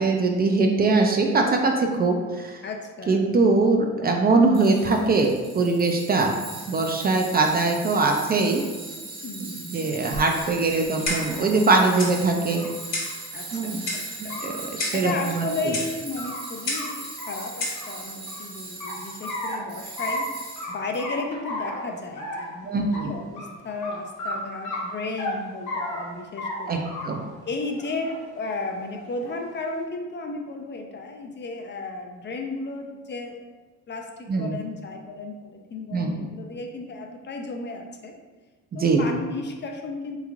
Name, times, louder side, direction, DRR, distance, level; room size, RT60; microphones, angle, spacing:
voice 1, 0.0-2.6 3.1-6.4 6.7-8.6 9.5-12.7 13.5-13.8 14.4-15.4 22.6-23.1 26.7-27.2 34.3-34.6 35.9-36.3 38.8-39.1, right 3 dB, 30° right, 2 dB, 0.4 m, -22 dB
voice 2, 2.6-3.2 9.2-9.8 13.3-14.4 14.9-20.3 20.7-26.8 27.4-33.4 33.9-38.1 38.7-40.2, left 3 dB, 40° left, 3 dB, 0.4 m, -34 dB
Tools, 4.5-21.0, right 3 dB, 55° right, 1.0 m, -39 dB
sound 1, 10.1-10.2 10.8-11.5 12.6-12.7 13.0-13.1 13.5-13.6 14.1-14.6 15.7-16.4 16.7-16.9 17.2-18.4 18.8-19.6 20.0-20.2 20.6-20.7 21.0-21.8 22.1-22.5 22.9-23.0 23.4-23.5 23.8-23.9 24.2-24.3 24.6-25.3 25.7-26.0 26.4-26.6 26.8-27.3 27.6-28.2 29.0-29.5, left 2 dB, 75° left, 1.0 m, -33 dB
Clock, 11.1-11.4 12.0-12.2 12.9-13.2 13.9-14.1 14.8-15.1 15.7-15.9 16.7-16.9 17.6-17.8, left 2 dB, 60° left, 1.2 m, -29 dB
3.4 x 3.1 x 2.4 m, 1.4 s
cardioid pair, 90°, 30 cm